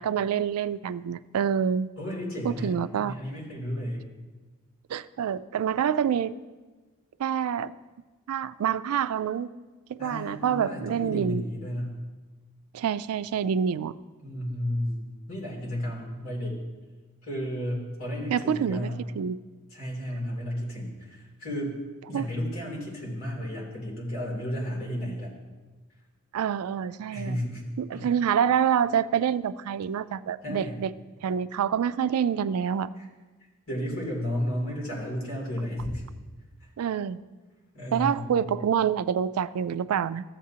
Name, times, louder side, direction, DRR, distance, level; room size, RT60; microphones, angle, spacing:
voice 1, 0.0-1.9 2.4-3.1 4.9-6.3 7.2-7.7 8.3-9.5 9.9-11.4 12.7-14.0 18.3-18.9 19.2-19.4 22.1-22.2 26.3-27.4 27.8-30.9 31.2-32.9 36.8-37.2 37.9-40.2, right 8 dB, 80° right, 15 dB, 0.3 m, -27 dB
voice 2, 2.0-4.1 10.0-12.0 14.2-16.6 17.2-19.0 19.7-21.8 22.1-25.3 27.1-27.6 27.9-28.1 30.4-30.8 33.0-33.1 33.7-36.0 36.6-36.7 37.7-38.5, equal, 65° left, -4 dB, 2.9 m, -33 dB
15.0 x 7.4 x 2.8 m, 1.3 s
head